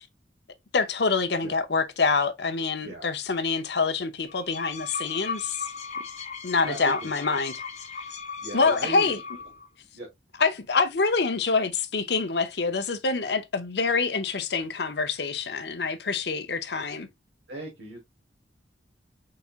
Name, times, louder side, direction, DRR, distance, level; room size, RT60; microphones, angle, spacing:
voice 1, 0.7-5.7 6.4-7.5 8.5-9.2 10.4-17.1, left 4 dB, 65° left, 0.7 m, -26 dB
sound 1, 4.3-9.7, left 5 dB, 40° left, 1.0 m, -37 dB
voice 2, 6.6-7.4 8.4-9.1 9.9-10.1 17.5-18.0, right 2 dB, 70° right, 1.4 m, -37 dB
4.7 x 4.2 x 2.4 m
head